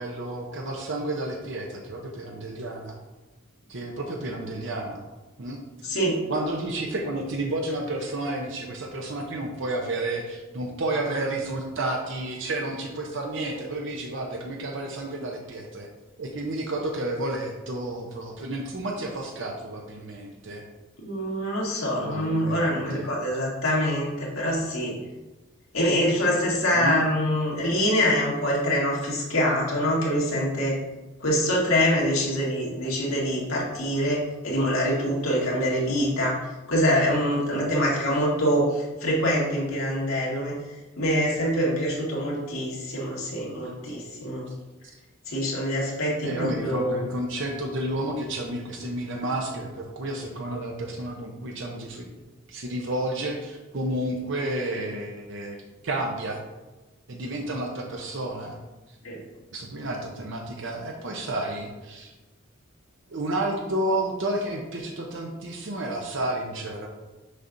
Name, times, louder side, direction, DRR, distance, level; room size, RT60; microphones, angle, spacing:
voice 1, 0.0-3.0 3.7-5.0 5.4-6.0 6.3-15.9 16.2-20.6 22.0-23.1 26.7-27.0 46.2-52.1 52.5-55.6 55.8-56.4 57.1-58.6 59.5-62.1 63.1-66.9, right 1 dB, 60° right, 0 dB, 0.7 m, -31 dB
voice 2, 5.8-6.2 21.0-24.9 25.7-30.8 31.2-36.4 36.7-40.6 41.0-44.5 45.3-47.0 59.0-59.2, equal, 80° left, -5 dB, 1.9 m, -25 dB
6.5 x 5.7 x 2.6 m, 1.1 s
head